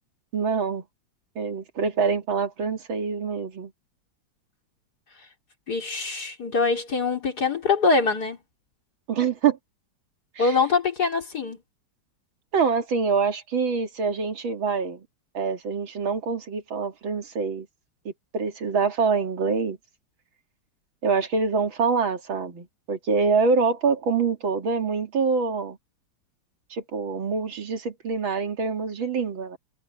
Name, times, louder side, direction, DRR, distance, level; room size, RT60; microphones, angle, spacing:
voice 1, 0.3-0.8 1.4-3.7 9.1-9.6 10.4-10.6 12.5-15.1 15.3-17.7 18.0-19.8 21.0-25.8 26.7-29.6, right 5 dB, 80° right, 2.8 m, -25 dB
voice 2, 5.7-8.4 10.4-11.6, left 4 dB, 50° left, 4.1 m, -23 dB
omnidirectional pair, 2.2 m